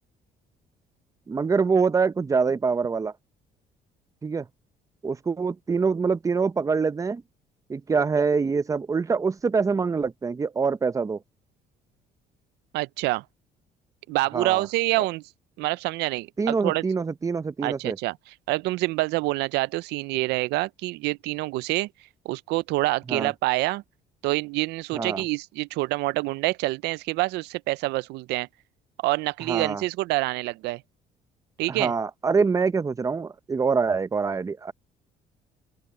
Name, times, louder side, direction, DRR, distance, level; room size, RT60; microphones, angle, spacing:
voice 1, 1.3-3.1 4.2-4.5 5.0-7.2 7.7-11.2 14.3-14.7 15.0-15.1 16.4-18.0 23.1-23.3 24.9-25.2 29.5-29.8 31.7-34.7, right 5 dB, 20° right, 0.6 m, -25 dB
voice 2, 12.7-13.2 14.1-15.2 15.6-16.8 17.6-18.2 18.5-21.9 22.3-23.8 24.2-28.5 29.0-30.8 31.6-31.9, right 20 dB, 85° right, 0.5 m, -26 dB
open air
cardioid pair, 110°, 17 cm